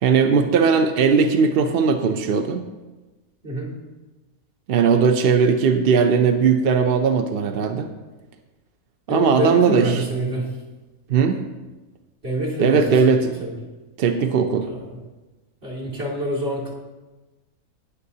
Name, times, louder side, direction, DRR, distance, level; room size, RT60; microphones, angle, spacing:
voice 1, 0.0-2.6 4.7-7.9 9.1-10.0 11.1-11.5 12.6-13.3 14.0-14.7, right 6 dB, 60° right, 6 dB, 0.6 m, -18 dB
voice 2, 9.1-10.4 12.2-13.5 14.7-14.8 15.6-16.7, right 1 dB, 40° right, -5 dB, 2.6 m, -26 dB
17.5 x 6.7 x 2.8 m, 1.2 s
omnidirectional pair, 1.5 m